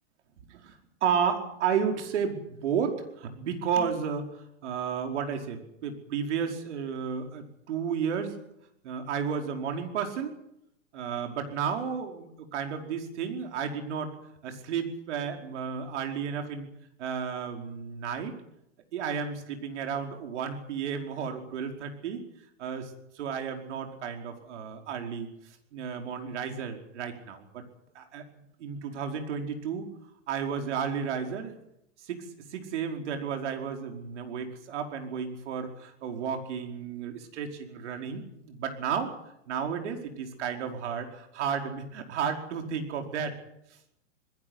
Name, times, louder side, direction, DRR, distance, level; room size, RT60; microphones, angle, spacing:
voice 1, 0.5-8.3 8.8-10.3 10.9-14.1 14.4-16.7 17.0-18.3 18.9-22.2 22.6-25.3 25.7-27.6 27.9-28.2 28.6-29.9 30.3-31.5 32.0-32.2 32.5-39.1 39.5-43.3, right 7 dB, 65° right, 4 dB, 5.0 m, -32 dB
20.5 x 17.0 x 9.7 m, 0.79 s
hypercardioid pair, 120°, 38 cm